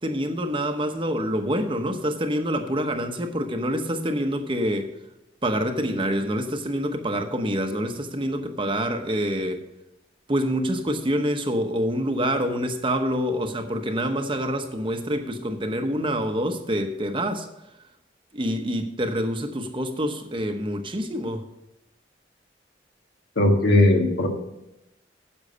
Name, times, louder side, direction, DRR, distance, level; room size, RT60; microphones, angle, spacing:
voice 1, 0.0-4.9 5.4-9.6 10.3-17.5 18.3-21.4, equal, 30° right, 6 dB, 0.9 m, -26 dB
voice 2, 23.4-24.3, left 1 dB, 75° left, 3 dB, 1.7 m, -18 dB
10.0 x 7.3 x 5.4 m, 0.91 s
head